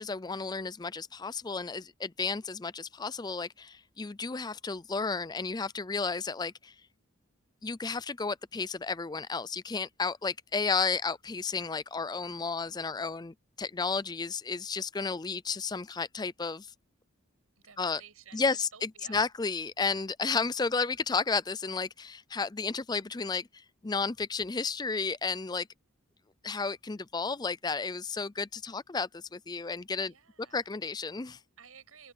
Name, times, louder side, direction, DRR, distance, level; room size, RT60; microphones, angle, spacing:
voice 1, 0.0-6.7 7.6-16.7 17.8-18.0 18.3-25.7 26.4-30.1 30.5-31.4, left 4 dB, 20° left, 0.4 m, -32 dB
voice 2, 17.6-19.3 30.0-30.6 31.6-32.1, right 7 dB, 85° right, 7.0 m, -53 dB
open air
head